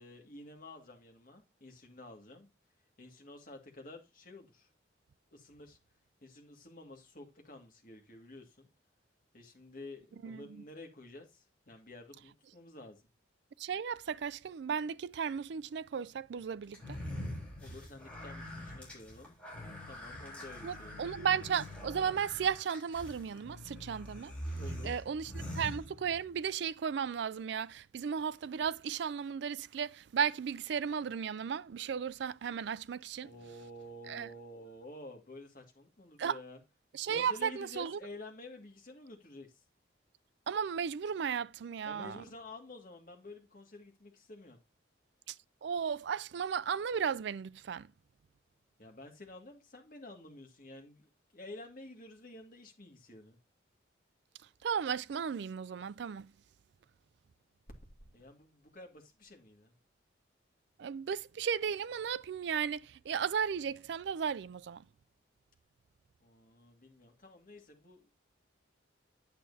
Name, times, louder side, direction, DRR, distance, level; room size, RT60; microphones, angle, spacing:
voice 1, 0.0-2.5 3.0-4.7 5.3-5.8 6.2-8.7 9.3-13.0 17.6-19.4 19.9-21.1 24.6-25.0 33.2-36.6 37.1-39.6 41.8-44.6 48.8-53.4 58.0-59.8 66.2-68.1, left 2 dB, 45° left, 2.1 m, -51 dB
voice 2, 13.6-17.0 20.6-24.3 24.8-33.3 34.1-34.3 36.2-36.4 36.9-38.0 40.5-42.2 45.3-45.4 45.6-47.9 54.6-56.3 60.8-64.8, right 7 dB, 65° right, 0.3 m, -35 dB
sound 1, 16.7-26.4, equal, 5° left, 3.4 m, -44 dB
9.0 x 7.5 x 2.8 m
head